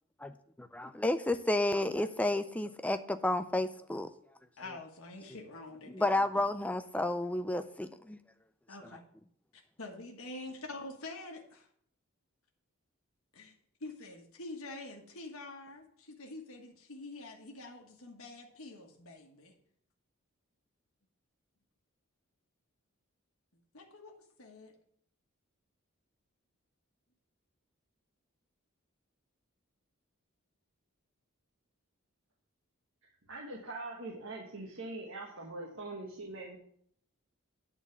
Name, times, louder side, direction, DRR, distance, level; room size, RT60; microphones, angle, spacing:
voice 1, 0.7-4.1 5.9-8.2, left 1 dB, 5° left, 0.4 m, -31 dB
voice 2, 4.6-6.3 8.7-9.0 9.5-11.7 13.3-13.5 13.8-19.5 23.5-24.7, left 2 dB, 80° left, 1.4 m, -46 dB
voice 3, 33.3-36.6, right 2 dB, 65° right, 1.5 m, -42 dB
9.6 x 4.0 x 7.0 m
head